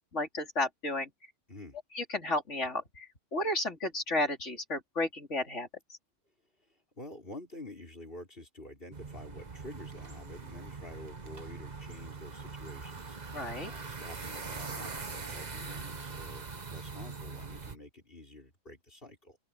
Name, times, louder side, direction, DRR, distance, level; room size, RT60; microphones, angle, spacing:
voice 1, 0.1-1.1 2.0-5.7 13.3-13.7, left 2 dB, 65° left, 3.9 m, -33 dB
voice 2, 1.5-1.8 7.0-19.4, left 1 dB, 45° left, 6.2 m, -49 dB
sound 1, 8.9-17.7, right 4 dB, 35° right, 1.4 m, -42 dB
open air
omnidirectional pair, 1.3 m